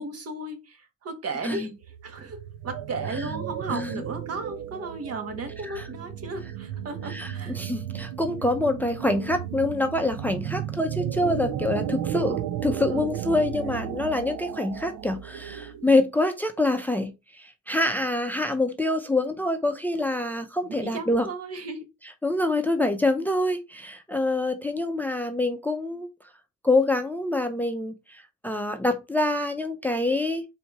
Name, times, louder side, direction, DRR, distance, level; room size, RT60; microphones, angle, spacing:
voice 1, 0.0-7.7 12.9-13.2 20.6-21.9, right 3 dB, 55° right, 7 dB, 1.3 m, -35 dB
sound 1, 1.8-16.0, right 10 dB, 85° right, 0.6 m, -34 dB
voice 2, 3.7-4.0 5.6-5.8 7.1-21.3 22.2-26.1 26.6-30.5, left 2 dB, 5° left, 7 dB, 0.5 m, -26 dB
4.2 x 2.8 x 4.6 m, 0.25 s
cardioid pair, 90°, 30 cm